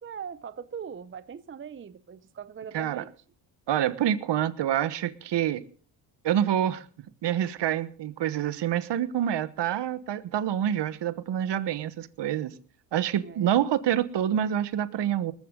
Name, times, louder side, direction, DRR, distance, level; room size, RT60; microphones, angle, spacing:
voice 1, 0.0-3.1 13.2-13.5, right 7 dB, 25° right, 0.7 m, -40 dB
voice 2, 3.7-5.6 6.2-6.8 7.2-12.5 12.9-15.3, right 10 dB, 55° right, 1.3 m, -27 dB
20.0 x 14.5 x 3.8 m
supercardioid pair, 80°, 50 cm